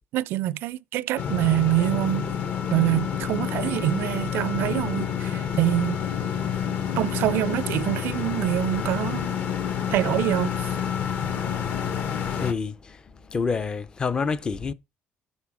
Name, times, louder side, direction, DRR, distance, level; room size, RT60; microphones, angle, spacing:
voice 1, 0.1-2.3 2.7-6.0 7.0-9.3 9.9-10.7, right 14 dB, 70° right, 0.4 m, -25 dB
sound 1, 1.2-12.5, left 8 dB, 45° left, 1.0 m, -28 dB
voice 2, 12.3-13.0 13.3-14.7, left 5 dB, 20° left, 0.5 m, -28 dB
8.3 x 5.4 x 6.1 m
cardioid pair, 165°, 4 cm